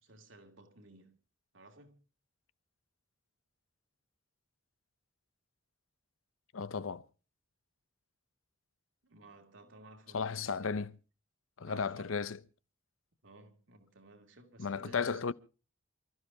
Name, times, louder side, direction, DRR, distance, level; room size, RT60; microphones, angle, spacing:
voice 1, 0.0-1.2 1.5-2.0 9.0-10.7 11.6-12.1 13.2-15.3, right 2 dB, 70° right, 2.6 m, -57 dB
voice 2, 6.5-7.0 10.1-11.0 11.6-12.4 14.6-15.3, left 5 dB, 90° left, 0.7 m, -34 dB
28.5 x 13.0 x 2.7 m
head